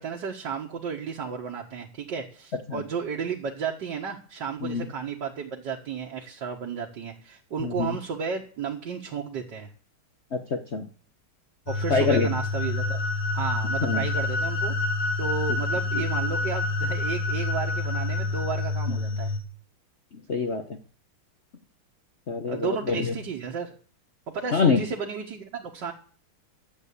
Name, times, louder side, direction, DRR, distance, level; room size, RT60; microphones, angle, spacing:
voice 1, 0.0-9.7 11.7-13.0 13.3-14.7 15.2-19.3 22.4-23.8 24.3-25.9, right 6 dB, 55° right, -1 dB, 2.1 m, -33 dB
voice 2, 7.6-8.0 10.3-10.9 11.9-12.3 13.8-14.1 18.9-19.0 20.3-20.8 22.3-23.1 24.5-24.8, left 4 dB, 45° left, 5 dB, 0.9 m, -25 dB
sound 1, 11.7-19.4, left 2 dB, 80° left, 3.0 m, -27 dB
12.5 x 8.3 x 8.4 m, 0.42 s
omnidirectional pair, 2.3 m